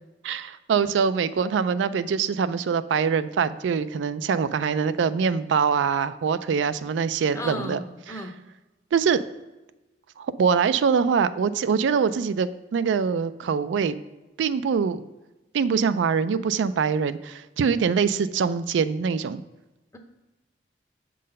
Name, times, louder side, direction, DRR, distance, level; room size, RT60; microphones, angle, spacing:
voice 1, 0.2-7.8 8.1-8.2 8.9-9.2 10.2-14.0 14.4-15.0 15.5-19.4, right 6 dB, 80° right, 13 dB, 0.3 m, -24 dB
voice 2, 7.3-8.4 19.9-20.0, left 1 dB, 15° left, 4 dB, 0.7 m, -35 dB
7.4 x 3.9 x 5.3 m, 1.1 s
head